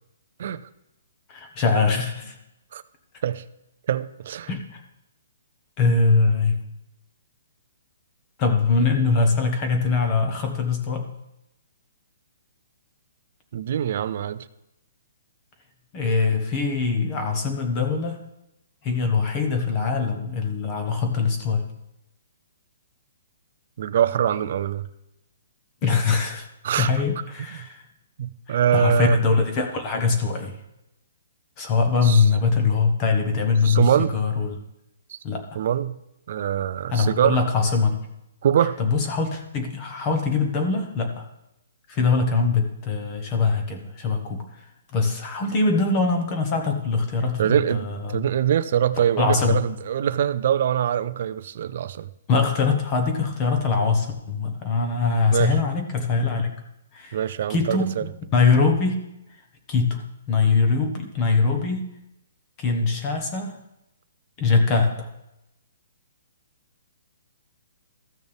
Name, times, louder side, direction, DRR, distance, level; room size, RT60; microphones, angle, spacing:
voice 1, 1.3-2.3 4.5-4.8 5.8-6.6 8.4-11.1 15.9-18.2 18.8-21.6 25.8-26.5 26.8-27.8 28.5-30.5 31.6-34.5 35.2-35.6 36.9-38.0 38.8-41.3 41.9-44.6 44.9-48.2 49.2-49.6 52.3-56.5 56.9-57.2 57.5-59.0 59.7-60.0 60.3-61.8 62.6-63.6 64.4-65.1, left 4 dB, 25° left, 4 dB, 1.3 m, -22 dB
voice 2, 3.9-4.5 13.5-14.5 23.8-24.9 26.6-26.9 27.5-27.7 28.2-29.2 32.0-32.3 33.6-34.2 35.1-35.2 35.6-35.9 36.3-37.4 38.4-38.8 47.4-52.1 55.3-55.6 57.1-58.1, right 9 dB, 45° right, 14 dB, 0.5 m, -23 dB
14.5 x 6.3 x 3.5 m, 0.86 s
hypercardioid pair, 170°, 0 cm